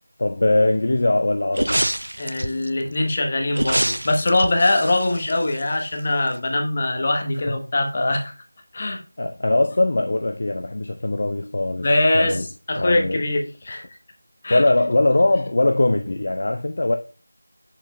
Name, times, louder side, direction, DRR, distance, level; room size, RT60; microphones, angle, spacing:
voice 1, 0.2-1.8 9.2-11.9 12.1-12.5 12.8-13.3 14.5-17.0, left 2 dB, 45° left, 0.5 m, -21 dB
sound 1, 1.5-2.7 3.5-6.0 6.3-6.4, right 1 dB, 70° right, 0.5 m, -26 dB
voice 2, 2.2-8.3 8.7-9.0 11.8-13.8 14.4-14.6, left 2 dB, 30° left, 1.0 m, -22 dB
7.1 x 7.0 x 2.2 m
figure-of-eight pair, 170°, 0 cm